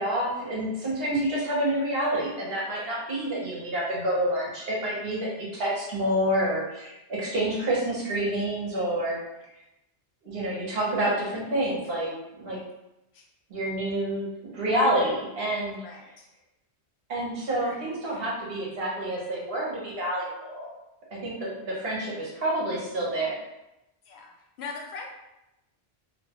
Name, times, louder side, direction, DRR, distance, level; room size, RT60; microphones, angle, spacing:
voice 1, 0.0-9.2 10.2-12.6 13.5-15.8 17.1-20.7 21.1-23.4, right 1 dB, 65° right, -5 dB, 1.1 m, -28 dB
voice 2, 15.8-16.3 17.6-18.2 24.0-24.3 24.6-25.1, left 4 dB, 75° left, 0 dB, 0.8 m, -42 dB
2.7 x 2.2 x 2.8 m, 0.92 s
omnidirectional pair, 1.1 m